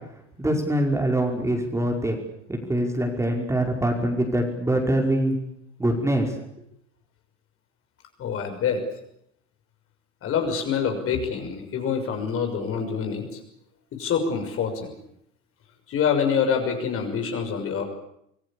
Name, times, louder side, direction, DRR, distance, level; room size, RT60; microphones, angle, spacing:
voice 1, 0.4-2.2 2.5-5.4 5.8-6.3, right 1 dB, 10° right, 2 dB, 5.3 m, -24 dB
voice 2, 8.2-8.8 10.2-13.4 13.9-14.9 15.9-17.8, left 6 dB, 35° left, 5 dB, 6.4 m, -26 dB
26.0 x 22.5 x 8.7 m, 0.76 s
figure-of-eight pair, 75°, 37 cm